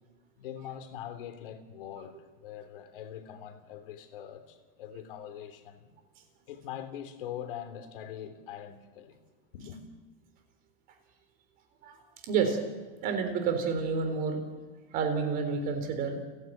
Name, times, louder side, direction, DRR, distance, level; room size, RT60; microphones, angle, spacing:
voice 1, 0.4-5.9 6.5-9.2 9.5-9.8, left 9 dB, 65° left, 3.2 m, -43 dB
voice 2, 12.2-12.6 13.0-14.4 14.9-16.2, right 5 dB, 30° right, 3.9 m, -29 dB
30.0 x 11.0 x 9.1 m
supercardioid pair, 170°, 29 cm